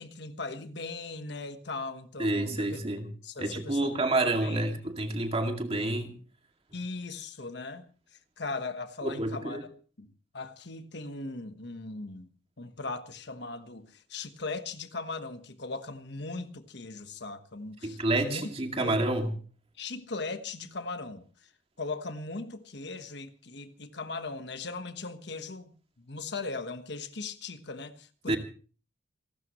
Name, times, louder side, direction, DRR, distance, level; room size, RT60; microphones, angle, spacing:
voice 1, 0.0-2.7 3.2-4.7 6.7-9.7 10.0-12.3 12.6-18.5 18.8-19.0 19.8-21.5 21.8-25.7 26.0-28.4, left 3 dB, 60° left, 1.3 m, -39 dB
voice 2, 2.2-3.1 3.4-6.1 9.0-9.6 17.8-19.3 28.3-28.4, right 2 dB, 30° right, 2.2 m, -29 dB
28.5 x 12.5 x 3.1 m
head